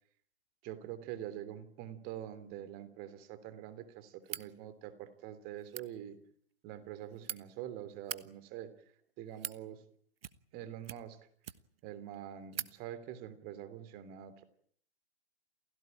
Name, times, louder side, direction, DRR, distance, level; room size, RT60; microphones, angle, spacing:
voice 1, 0.6-6.2 6.6-8.7 9.2-9.8 10.5-11.2 11.8-14.4, right 11 dB, 30° right, 12 dB, 3.2 m, -45 dB
sound 1, 4.2-4.5 5.6-5.9 6.8-7.4 7.9-8.2 9.0-9.6 10.2-10.6 10.8-11.8 12.1-12.2 12.5-12.7, right 9 dB, 60° right, 1.3 m, -42 dB
28.5 x 17.0 x 8.9 m, 0.63 s
figure-of-eight pair, 125°, 33 cm